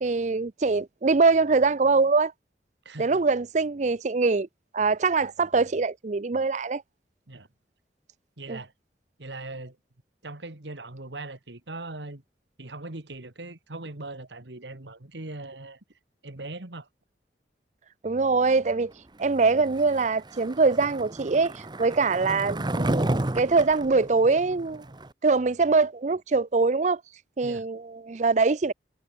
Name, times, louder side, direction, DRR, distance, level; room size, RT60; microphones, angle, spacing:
voice 1, 0.0-2.3 3.0-4.5 4.7-6.8 8.5-8.6 18.0-18.9 19.2-23.0 23.3-24.8 25.2-27.0 27.4-28.7, right 4 dB, 40° right, 0.5 m, -23 dB
voice 2, 2.9-3.2 7.3-7.5 8.4-8.7 9.2-9.8 10.2-12.2 12.6-15.8 16.2-16.9 27.4-27.7, right 2 dB, 80° right, 2.1 m, -40 dB
Skateboard, 19.7-25.1, right 1 dB, 25° right, 1.0 m, -31 dB
head